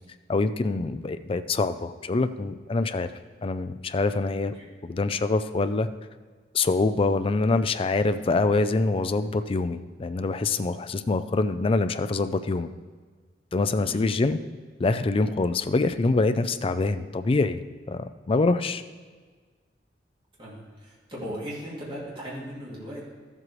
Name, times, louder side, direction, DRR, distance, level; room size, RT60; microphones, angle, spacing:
voice 1, 0.3-3.1 3.4-4.5 4.8-5.9 6.5-12.7 13.5-14.4 14.8-17.6 17.9-18.8, left 3 dB, 30° left, 10 dB, 0.4 m, -25 dB
voice 2, 20.4-23.0, equal, 30° right, -6 dB, 2.6 m, -37 dB
13.5 x 7.5 x 3.2 m, 1.5 s
head